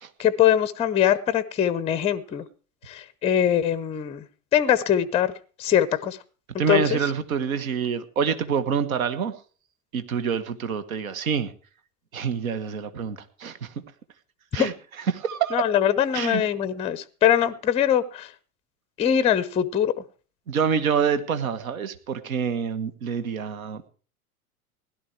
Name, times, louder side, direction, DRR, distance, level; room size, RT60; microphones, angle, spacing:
voice 1, 0.2-2.4 2.9-4.2 4.5-5.3 5.6-6.2 6.7-7.0 14.6-14.7 15.5-18.3 19.0-20.0, left 10 dB, 15° left, 17 dB, 0.6 m, -22 dB
voice 2, 6.6-9.3 9.9-11.5 12.1-13.7 14.5-14.7 15.1-15.6 16.1-16.4 20.5-23.9, right 7 dB, 65° right, 12 dB, 1.4 m, -26 dB
17.0 x 11.5 x 4.6 m, 0.39 s
figure-of-eight pair, 85°, 45 cm